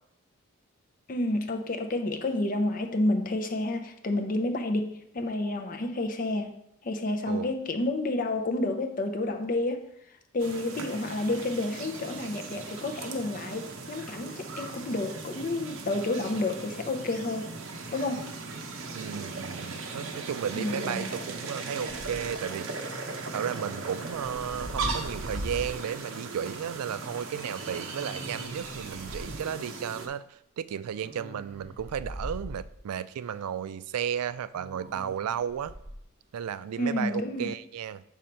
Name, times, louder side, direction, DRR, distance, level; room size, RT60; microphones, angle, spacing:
voice 1, 1.1-6.5 6.8-9.8 10.3-17.5 17.9-18.3 20.5-21.2 36.8-37.5, left 2 dB, 40° left, 4 dB, 0.5 m, -30 dB
sound 1, 10.4-30.1, right 3 dB, 65° right, 0.8 m, -38 dB
voice 2, 18.9-22.7 23.3-30.2 30.6-35.7 36.3-38.0, right 8 dB, 85° right, 15 dB, 0.3 m, -34 dB
sound 2, 21.9-22.4 24.1-25.8 26.4-26.5 27.9-29.4 30.9-32.8 34.5-36.0, equal, 30° right, 0.7 m, -40 dB
6.2 x 5.2 x 4.4 m, 0.78 s
head